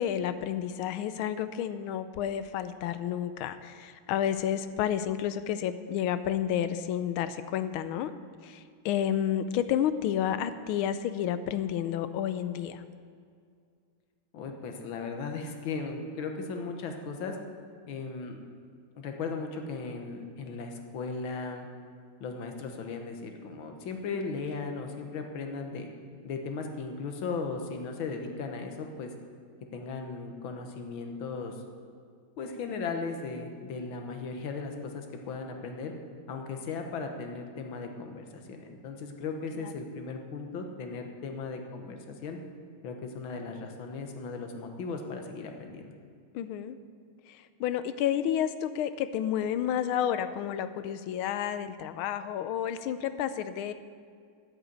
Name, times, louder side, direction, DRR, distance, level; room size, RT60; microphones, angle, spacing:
voice 1, 0.0-8.1 8.4-12.8 39.6-39.7 46.3-46.8 47.3-53.7, left 10 dB, 90° left, 12 dB, 1.5 m, -30 dB
voice 2, 14.3-17.4 17.9-18.4 19.0-21.7 22.2-25.9 26.2-29.1 29.7-31.5 32.4-35.9 36.3-42.4 42.8-45.9, left 4 dB, 70° left, 4 dB, 1.9 m, -37 dB
9.9 x 8.1 x 9.1 m, 2.2 s
omnidirectional pair, 2.3 m